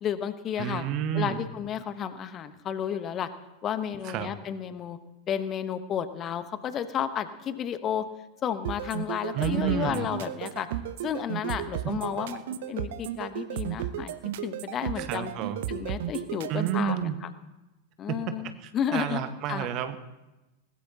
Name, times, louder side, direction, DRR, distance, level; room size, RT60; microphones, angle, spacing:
voice 1, 0.0-0.9 1.1-3.3 3.6-5.0 5.3-8.1 8.4-10.7 11.0-14.1 14.4-15.3 15.7-17.3 18.0-19.2 19.5-19.7, left 9 dB, 30° left, 12 dB, 1.0 m, -32 dB
voice 2, 0.6-1.5 4.0-4.3 9.3-10.1 11.8-11.9 15.0-15.6 16.5-17.1 18.1-18.2 18.6-20.0, right 10 dB, 40° right, 9 dB, 1.4 m, -30 dB
sound 1, 8.6-16.9, right 11 dB, 55° right, 0.8 m, -34 dB
20.5 x 20.0 x 2.9 m, 1.0 s
figure-of-eight pair, 90°, 0 cm